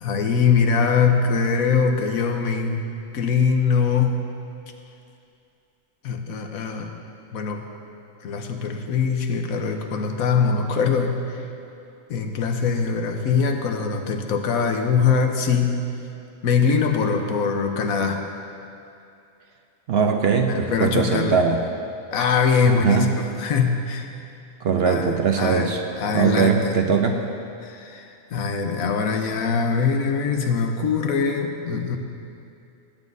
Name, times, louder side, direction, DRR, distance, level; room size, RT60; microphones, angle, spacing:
voice 1, 0.0-2.8 3.1-4.3 6.0-6.9 7.3-7.6 8.2-11.4 12.1-15.9 16.4-18.3 20.5-21.4 22.1-24.1 24.9-25.1 25.4-25.7 26.0-26.7 27.6-32.0, left 5 dB, 85° left, 4 dB, 1.3 m, -22 dB
voice 2, 19.9-21.6 22.7-23.1 24.6-25.8 26.1-27.2, right 6 dB, 60° right, 4 dB, 0.8 m, -21 dB
18.5 x 9.4 x 2.7 m, 2.6 s
omnidirectional pair, 1.4 m